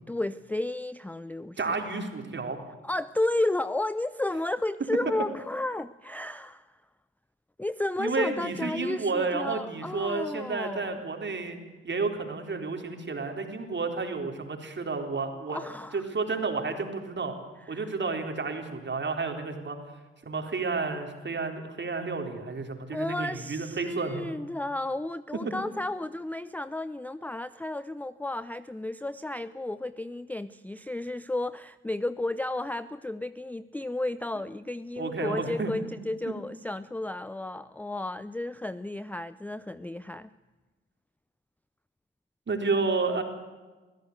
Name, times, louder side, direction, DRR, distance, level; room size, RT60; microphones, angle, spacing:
voice 1, 0.1-1.8 2.8-6.7 7.6-11.0 15.5-16.0 17.7-17.9 22.9-40.3, left 2 dB, 5° left, 15 dB, 0.6 m, -33 dB
voice 2, 1.6-2.6 8.0-11.6 11.8-15.6 15.9-17.3 17.7-19.8 20.3-24.3 35.0-35.7 42.5-43.2, right 4 dB, 35° right, 4 dB, 4.0 m, -31 dB
23.0 x 16.0 x 8.1 m, 1.3 s
hypercardioid pair, 45°, 32 cm